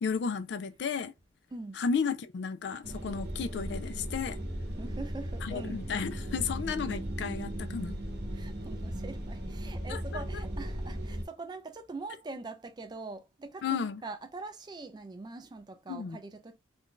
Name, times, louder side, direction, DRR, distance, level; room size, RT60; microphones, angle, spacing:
voice 1, 0.0-1.1 1.7-4.4 5.4-8.0 9.9-10.4 13.6-14.0 15.9-16.2, left 6 dB, 65° left, 0.3 m, -33 dB
voice 2, 1.5-1.8 4.8-5.8 8.3-16.6, right 3 dB, 20° right, 0.3 m, -43 dB
sound 1, 2.8-11.3, equal, 55° right, 0.8 m, -37 dB
2.5 x 2.3 x 3.6 m
head